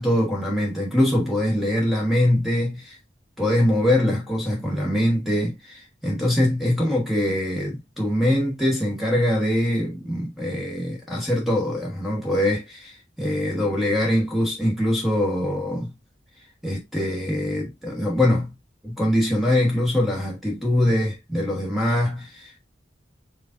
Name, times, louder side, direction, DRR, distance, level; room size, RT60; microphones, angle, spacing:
voice 1, 0.0-3.0 3.4-15.9 16.6-18.5 18.8-22.6, left 1 dB, ahead, 1.4 m, -23 dB
5.0 x 4.1 x 2.6 m
head